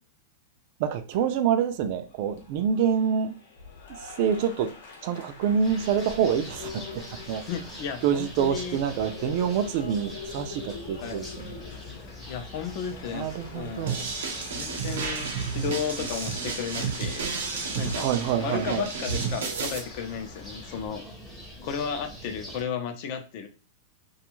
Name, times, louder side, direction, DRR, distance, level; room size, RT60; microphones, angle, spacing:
voice 1, 0.8-3.3 4.0-4.7 5.0-7.5 8.0-11.6 13.1-14.1 18.0-18.9, right 8 dB, 45° right, 0.3 m, -27 dB
Applause, 1.1-20.9, left 5 dB, 70° left, 0.8 m, -45 dB
sound 1, 5.6-22.6, left 1 dB, 5° left, 0.7 m, -44 dB
voice 2, 7.5-8.8 11.0-11.3 12.3-14.0 14.5-17.3 17.8-18.1 18.4-21.0 21.6-23.5, left 7 dB, 45° left, 0.5 m, -34 dB
sound 2, 13.9-19.8, right 5 dB, 85° right, 0.8 m, -31 dB
2.5 x 2.3 x 3.0 m
supercardioid pair, 160°, 0 cm